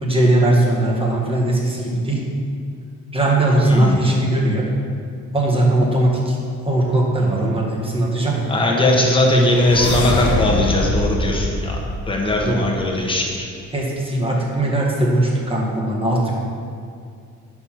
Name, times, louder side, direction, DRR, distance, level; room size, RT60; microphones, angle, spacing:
voice 1, 0.0-2.2 3.1-4.7 5.3-6.4 6.6-8.4 12.4-12.6 13.7-16.3, right 1 dB, 20° right, -3 dB, 1.5 m, -19 dB
voice 2, 8.5-11.8 12.1-13.5, left 1 dB, 15° left, -2 dB, 1.3 m, -19 dB
sound 1, 8.8-12.9, left 2 dB, 70° left, 0.9 m, -25 dB
5.4 x 4.7 x 5.7 m, 2.3 s
cardioid pair, 90°, 30 cm